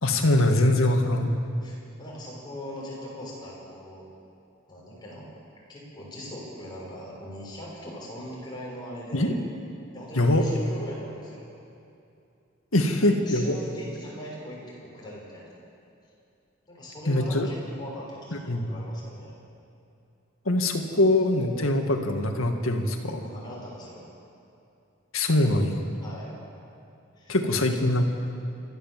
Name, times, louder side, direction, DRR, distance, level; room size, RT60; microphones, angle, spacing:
voice 1, 0.0-1.3 9.1-9.3 10.2-10.5 12.7-13.6 17.1-17.5 18.5-18.7 20.5-23.2 25.1-25.8 27.3-28.1, left 1 dB, 85° left, 4 dB, 2.0 m, -23 dB
voice 2, 1.6-4.0 4.7-5.3 5.7-9.3 9.9-11.5 12.7-15.5 16.7-19.3 23.2-24.0 26.0-26.3 27.2-27.4, equal, 20° left, -5 dB, 6.5 m, -40 dB
27.0 x 13.5 x 7.5 m, 2.6 s
head